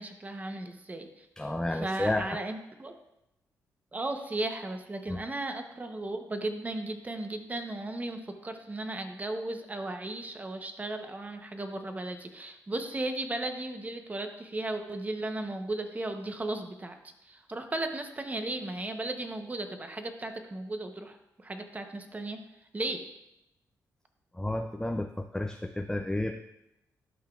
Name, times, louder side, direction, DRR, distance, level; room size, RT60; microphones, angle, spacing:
voice 1, 0.0-1.3 1.7-3.0 3.9-17.0 17.3-22.4 22.7-23.0, right 2 dB, 25° right, 6 dB, 0.9 m, -35 dB
voice 2, 1.4-2.4 5.1-5.2 24.3-26.3, left 1 dB, 10° left, 4 dB, 0.5 m, -31 dB
12.0 x 5.7 x 2.4 m, 0.89 s
cardioid pair, 80°, 7 cm